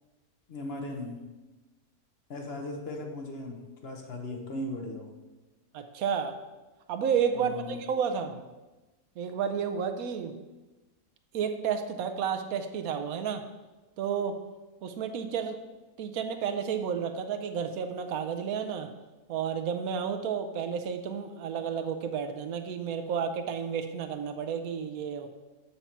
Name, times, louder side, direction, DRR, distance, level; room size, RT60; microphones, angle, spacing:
voice 1, 0.5-1.2 2.3-5.1 7.3-7.8, left 1 dB, 45° left, 2 dB, 1.0 m, -37 dB
voice 2, 5.7-6.3 6.9-8.3 9.2-10.3 11.3-13.4 14.0-14.4 14.8-15.6 16.0-18.9 19.3-25.3, right 7 dB, 65° right, 7 dB, 1.0 m, -31 dB
7.2 x 5.5 x 4.4 m, 1.1 s
omnidirectional pair, 1.8 m